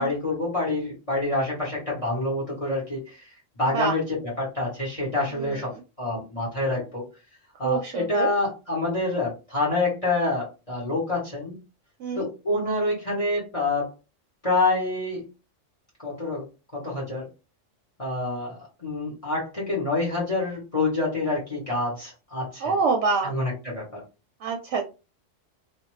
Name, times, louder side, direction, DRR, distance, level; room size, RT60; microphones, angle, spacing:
voice 1, 0.0-3.3 3.6-5.7 6.0-7.0 7.6-11.6 12.1-13.9 14.4-15.2 16.0-16.5 16.7-17.3 18.0-22.8 23.2-24.0, left 2 dB, 30° left, -4 dB, 1.0 m, -27 dB
voice 2, 7.6-8.3 12.0-12.3 22.6-23.3 24.4-24.9, right 4 dB, 70° right, 2 dB, 0.8 m, -25 dB
2.5 x 2.3 x 3.0 m, 0.30 s
omnidirectional pair, 1.3 m